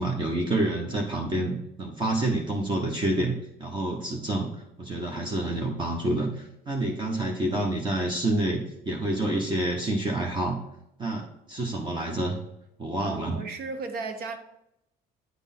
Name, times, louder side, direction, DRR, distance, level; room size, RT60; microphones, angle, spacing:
voice 1, 0.0-4.5 4.8-10.6 11.0-12.4 12.8-13.4, right 1 dB, 30° right, 1.1 m, -28 dB
voice 2, 13.0-14.4, right 4 dB, 65° right, 1.0 m, -34 dB
9.3 x 3.5 x 4.2 m
cardioid pair, 110°, 17 cm